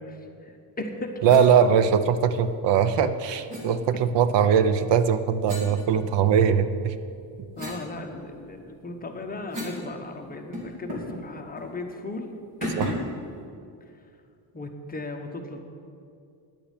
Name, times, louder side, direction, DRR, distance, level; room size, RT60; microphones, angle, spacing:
voice 1, 0.0-1.3 6.2-6.3 7.6-12.3 12.6-13.1 14.5-15.6, left 2 dB, 20° left, 3 dB, 0.9 m, -36 dB
voice 2, 1.2-7.0 12.8-12.9, right 7 dB, 65° right, 12 dB, 0.7 m, -21 dB
sound 1, 1.3-1.5 3.5-3.7 5.4-6.5 7.0-9.9 10.1-10.2 10.5-11.2 11.5-11.7 12.6-13.2, left 1 dB, 40° right, 3.0 m, -36 dB
10.5 x 8.7 x 8.2 m, 2.4 s
cardioid pair, 165°, 46 cm